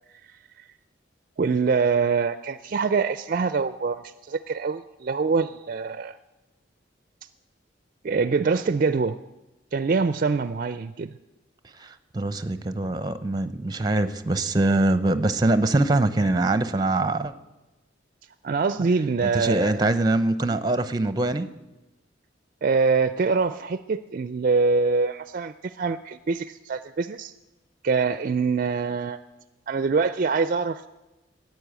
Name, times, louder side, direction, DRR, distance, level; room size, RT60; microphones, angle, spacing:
voice 1, 1.4-6.2 8.0-9.2 9.7-11.1 18.4-19.9 22.6-27.3 27.8-29.2 29.7-30.8, right 4 dB, 45° right, 13 dB, 0.4 m, -24 dB
voice 2, 11.8-17.3 19.2-21.5, right 2 dB, 20° right, 12 dB, 0.7 m, -23 dB
14.0 x 9.4 x 8.2 m, 1.1 s
head